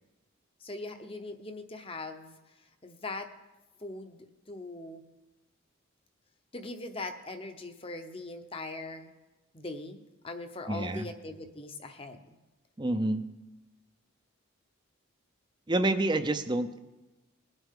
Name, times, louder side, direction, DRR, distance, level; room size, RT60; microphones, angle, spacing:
voice 1, 0.6-3.3 3.8-5.0 6.5-9.1 9.5-12.3, left 2 dB, 25° left, 7 dB, 0.8 m, -41 dB
voice 2, 10.7-11.1 12.8-13.3 15.7-16.8, right 2 dB, 20° right, 9 dB, 0.6 m, -28 dB
20.5 x 9.1 x 3.7 m, 1.1 s
head